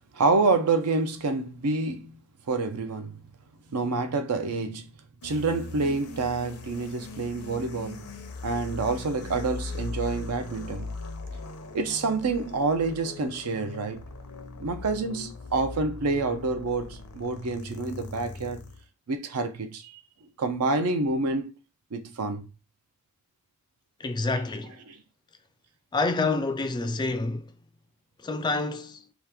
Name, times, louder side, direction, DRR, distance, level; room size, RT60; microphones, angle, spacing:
voice 1, 0.1-2.1 2.5-3.2 3.7-4.9 5.2-8.1 8.4-11.0 11.7-14.0 14.6-18.7 19.1-19.9 20.4-21.5 21.9-22.5 24.4-24.5 24.9-25.0, right 3 dB, 85° right, 0.6 m, -27 dB
sound 1, 5.2-18.9, left 3 dB, 85° left, 0.6 m, -40 dB
voice 2, 24.0-24.7 25.9-27.5 28.2-29.0, left 3 dB, 20° left, 0.3 m, -28 dB
2.9 x 2.4 x 3.4 m
head